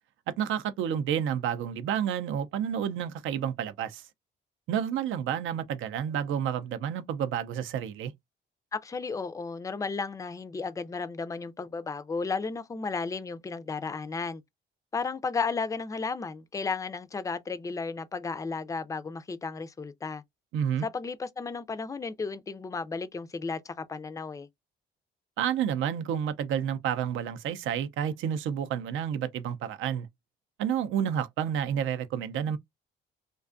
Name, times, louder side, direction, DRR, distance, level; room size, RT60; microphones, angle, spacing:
voice 1, 0.3-4.0 4.7-8.1 20.5-20.9 25.4-30.1 30.6-32.6, right 9 dB, 80° right, 0.5 m, -30 dB
voice 2, 8.7-14.4 14.9-20.2 20.8-24.5, left 4 dB, 15° left, 0.4 m, -34 dB
2.5 x 2.2 x 2.4 m
cardioid pair, 90°, 20 cm